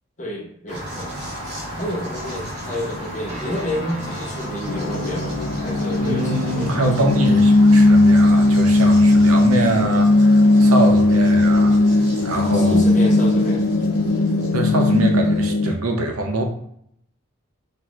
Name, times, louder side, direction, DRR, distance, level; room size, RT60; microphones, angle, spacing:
voice 1, 0.2-1.1 1.8-7.2 12.3-13.6, equal, 35° left, -1 dB, 1.1 m, -30 dB
sound 1, 0.7-15.5, equal, 50° right, 1.4 m, -35 dB
sound 2, 3.3-13.6, right 2 dB, 35° right, 0.8 m, -34 dB
sound 3, 4.7-15.7, left 2 dB, 80° left, 0.4 m, -17 dB
voice 2, 6.0-11.8 12.2-12.8 14.5-16.4, right 1 dB, 85° right, 4 dB, 0.8 m, -23 dB
6.1 x 2.8 x 2.4 m, 0.70 s
head